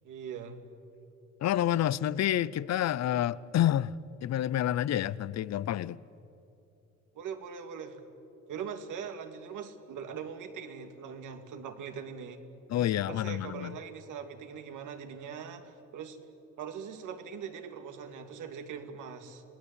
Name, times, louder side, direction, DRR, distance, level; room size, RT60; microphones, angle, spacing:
voice 1, 0.0-0.6 7.1-8.0 8.5-12.4 13.1-16.2 16.6-19.4, right 7 dB, 85° right, 2.5 m, -41 dB
voice 2, 1.4-3.9 4.2-6.0 12.7-13.8, left 12 dB, 60° left, 0.7 m, -28 dB
29.5 x 19.5 x 8.4 m
cardioid pair, 90°, 30 cm